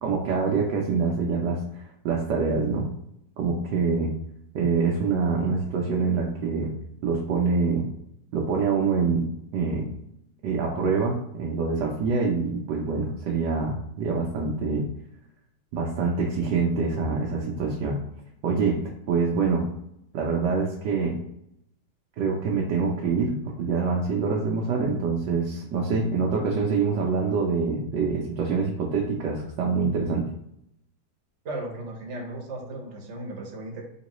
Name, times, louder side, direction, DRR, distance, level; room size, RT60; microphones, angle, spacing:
voice 1, 0.0-2.9 3.4-4.1 4.5-6.7 7.0-7.9 8.3-9.9 10.4-14.9 15.7-18.0 18.4-18.8 19.1-19.6 20.1-21.2 22.2-30.2, right 4 dB, 90° right, -2 dB, 1.3 m, -25 dB
voice 2, 31.4-33.8, right 2 dB, 50° right, -1 dB, 1.1 m, -36 dB
3.9 x 2.9 x 3.0 m, 0.76 s
omnidirectional pair, 1.8 m